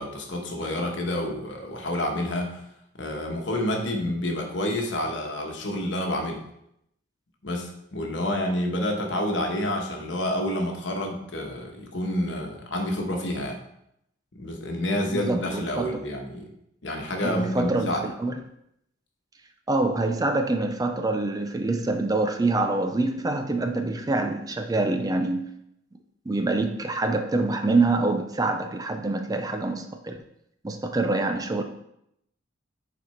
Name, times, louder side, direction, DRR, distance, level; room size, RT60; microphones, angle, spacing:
voice 1, 0.0-2.6 2.9-6.4 7.4-13.6 14.3-16.5 16.8-18.0, left 1 dB, 65° left, 1 dB, 1.2 m, -28 dB
voice 2, 15.1-15.9 17.2-18.3 19.7-25.5 26.3-30.2 30.6-31.6, right 2 dB, 20° right, 6 dB, 0.4 m, -25 dB
6.7 x 4.2 x 4.3 m, 0.78 s
head